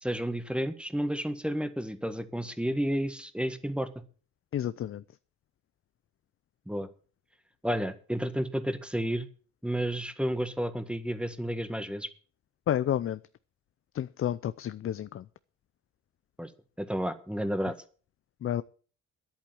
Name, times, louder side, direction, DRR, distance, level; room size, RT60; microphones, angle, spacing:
voice 1, 0.0-3.9 6.7-6.9 7.6-9.3 9.6-12.1 16.4-16.5 16.8-17.7, equal, 5° right, 1.5 m, -31 dB
voice 2, 4.5-5.0 12.7-13.2 13.9-15.3 18.4-18.6, left 10 dB, 45° left, 0.5 m, -30 dB
10.5 x 8.6 x 7.9 m
cardioid pair, 90°, 30 cm